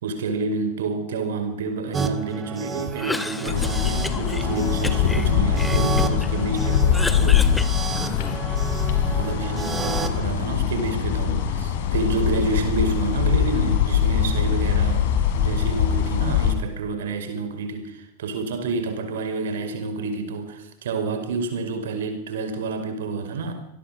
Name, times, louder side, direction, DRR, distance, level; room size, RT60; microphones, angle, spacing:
voice 1, 0.0-7.6 9.0-23.5, right 3 dB, 60° right, 8 dB, 5.2 m, -29 dB
sound 1, 1.9-10.2, right 6 dB, 20° right, 2.5 m, -31 dB
Cough, 2.9-4.4 4.8-6.3 6.6-8.5, left 1 dB, 5° left, 2.0 m, -32 dB
sound 2, 3.5-16.5, left 9 dB, 50° left, 4.2 m, -22 dB
26.0 x 19.5 x 7.8 m, 0.81 s
figure-of-eight pair, 90°, 0 cm